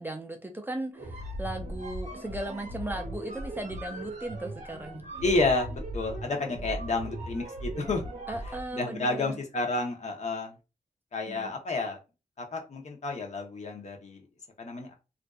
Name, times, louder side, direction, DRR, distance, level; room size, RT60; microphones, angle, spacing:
voice 1, 0.0-5.0 8.3-9.4 11.3-11.5, right 1 dB, 15° right, 0.3 m, -37 dB
sound 1, 0.9-8.7, right 1 dB, 55° right, 0.8 m, -38 dB
voice 2, 5.2-8.1 8.4-10.5 11.1-12.0 12.4-14.2 14.6-14.9, left 3 dB, 50° left, 0.7 m, -30 dB
2.5 x 2.3 x 2.2 m
wide cardioid pair, 100°, 15 cm